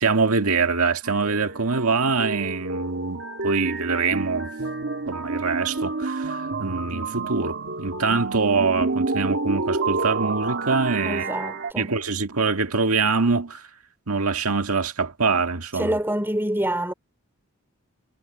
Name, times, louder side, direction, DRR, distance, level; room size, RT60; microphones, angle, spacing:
voice 1, 0.0-4.5 5.1-11.3 11.8-13.7 14.1-16.0, right 4 dB, 80° right, 1.9 m, -24 dB
sound 1, 1.0-11.7, right 3 dB, 60° right, 1.9 m, -29 dB
voice 2, 11.0-11.9 15.7-16.9, right 1 dB, 10° right, 5.1 m, -26 dB
head